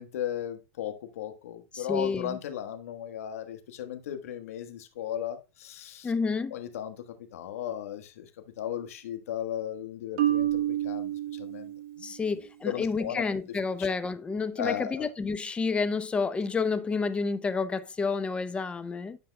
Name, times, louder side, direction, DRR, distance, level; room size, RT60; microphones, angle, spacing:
voice 1, 0.0-6.1 6.5-7.0 7.3-8.3 8.6-12.1 12.6-13.3 13.8-13.9 14.6-15.1, left 10 dB, 75° left, 1.4 m, -36 dB
voice 2, 1.7-2.4 6.0-6.6 12.0-19.2, left 4 dB, 15° left, 0.6 m, -30 dB
Marimba xylophone, 10.2-12.2, right 12 dB, 55° right, 1.3 m, -29 dB
11.0 x 5.5 x 2.3 m
hypercardioid pair, 120°, 8 cm